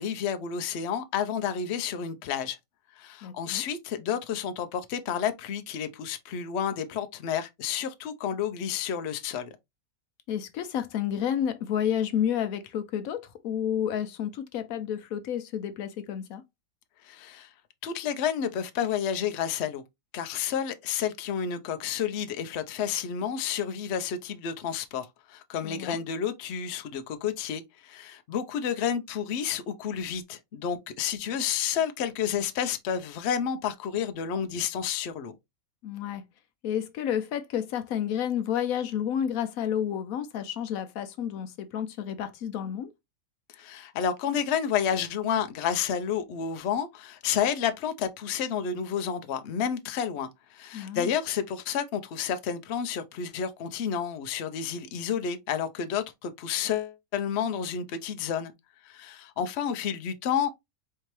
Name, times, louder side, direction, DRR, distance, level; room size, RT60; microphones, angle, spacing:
voice 1, 0.0-2.6 3.0-9.5 17.0-17.5 17.8-19.8 20.1-35.3 43.5-58.5 58.8-60.5, left 8 dB, 60° left, 0.7 m, -30 dB
voice 2, 3.2-3.6 10.3-16.4 25.6-26.0 35.8-36.2 36.6-42.9 50.7-51.1, left 9 dB, 75° left, 1.0 m, -30 dB
4.3 x 2.8 x 3.0 m
omnidirectional pair, 1.5 m